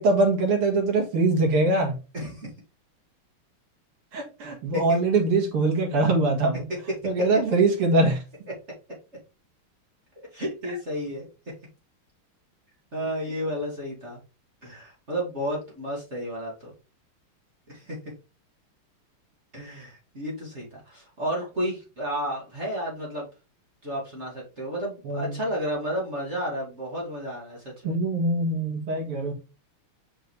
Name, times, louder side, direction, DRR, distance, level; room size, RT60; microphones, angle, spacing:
voice 1, 0.0-1.9 4.1-6.7 7.0-8.2 25.1-25.4 27.8-29.3, right 2 dB, 85° right, 2.7 m, -23 dB
voice 2, 2.1-2.5 4.7-5.0 7.0-7.2 10.2-11.3 12.9-14.2 14.6-16.7 17.7-18.1 19.5-23.3 23.8-27.9, equal, 30° right, 2.3 m, -32 dB
5.4 x 5.4 x 3.2 m
omnidirectional pair, 2.4 m